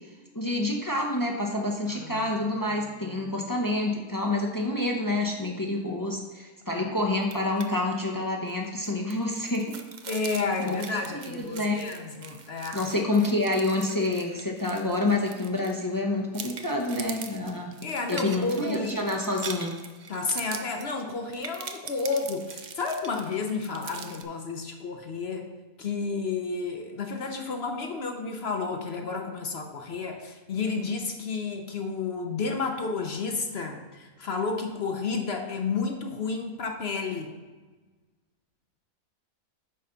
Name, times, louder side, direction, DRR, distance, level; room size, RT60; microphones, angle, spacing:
voice 1, 0.3-9.7 10.3-11.8 12.7-17.8 18.1-19.7, left 2 dB, 25° left, 1 dB, 0.4 m, -28 dB
voice 2, 1.9-2.4 2.7-3.3 6.8-6.9 10.1-12.9 17.8-19.1 20.1-25.5 25.8-37.3, left 4 dB, 50° left, 4 dB, 0.8 m, -31 dB
sound 1, 7.2-7.7 8.0-8.1 8.5-16.0 16.3-24.2, right 5 dB, 75° right, 0.4 m, -42 dB
9.1 x 3.9 x 5.8 m, 1.3 s
omnidirectional pair, 1.7 m